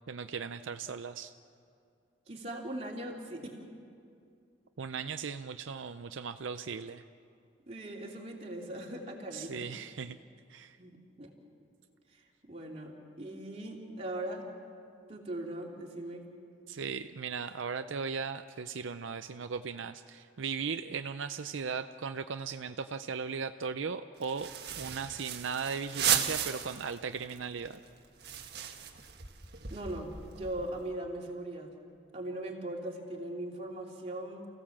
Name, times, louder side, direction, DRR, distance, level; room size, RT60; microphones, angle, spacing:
voice 1, 0.1-1.3 4.8-7.0 9.3-10.2 10.5-10.8 16.7-24.5 24.8-27.8, right 5 dB, 80° right, 9 dB, 0.5 m, -37 dB
voice 2, 2.3-3.6 7.7-9.6 10.8-11.3 12.1-14.5 15.1-16.2 29.7-30.1 30.4-31.7 32.1-34.5, right 1 dB, 30° right, -2 dB, 3.2 m, -40 dB
sound 1, 24.2-27.0 27.3-27.4 27.7-30.8, right 9 dB, 55° right, 1.6 m, -35 dB
29.5 x 16.5 x 7.3 m, 2.4 s
head